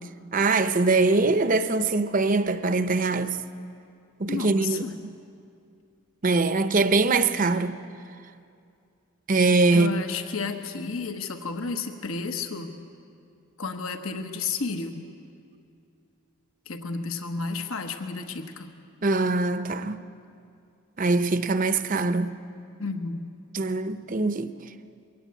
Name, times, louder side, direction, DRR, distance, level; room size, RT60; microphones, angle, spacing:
voice 1, 0.3-3.4 4.2-5.1 6.2-7.8 9.3-9.9 19.0-20.0 21.0-22.4 23.5-24.5, right 3 dB, 40° right, 0.6 m, -23 dB
voice 2, 4.3-4.9 9.7-12.7 13.6-15.0 16.7-18.7 22.8-23.2, left 4 dB, 75° left, 1.2 m, -32 dB
22.5 x 17.0 x 8.4 m
head